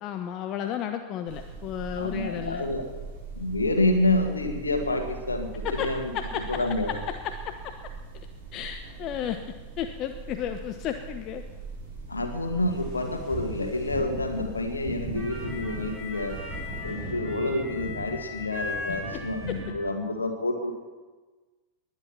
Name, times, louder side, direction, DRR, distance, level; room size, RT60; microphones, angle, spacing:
voice 1, 0.0-2.7 5.6-5.9 6.1-7.7 8.5-9.4 9.8-11.4 19.1-19.2 19.5-19.6, left 9 dB, 35° left, 8 dB, 0.8 m, -33 dB
sound 1, 1.3-16.8, right 4 dB, 50° right, 7.1 m, -41 dB
voice 2, 1.9-2.8 3.4-6.1 6.5-6.9 12.1-16.4 16.8-20.7, left 2 dB, 80° left, 5 dB, 2.1 m, -28 dB
sound 2, 12.7-19.7, equal, 25° right, 6.7 m, -37 dB
20.0 x 10.5 x 6.0 m, 1.3 s
figure-of-eight pair, 90°, 0 cm